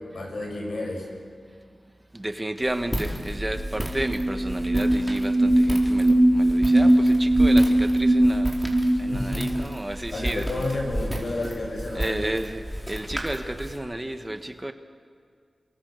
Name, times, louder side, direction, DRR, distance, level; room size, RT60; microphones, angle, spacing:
voice 1, 0.1-1.0 9.1-9.5 10.1-12.2, left 2 dB, 70° left, 0 dB, 7.9 m, -31 dB
voice 2, 2.1-8.5 8.9-10.7 11.9-14.7, right 1 dB, 20° right, 8 dB, 1.5 m, -32 dB
Walk footsteps, 2.6-13.8, equal, 5° right, 4.7 m, -33 dB
sound 1, 3.6-3.7 3.9-9.6, right 1 dB, 60° right, 3.6 m, -20 dB
29.5 x 23.5 x 6.8 m, 2.1 s
cardioid pair, 50°, 0 cm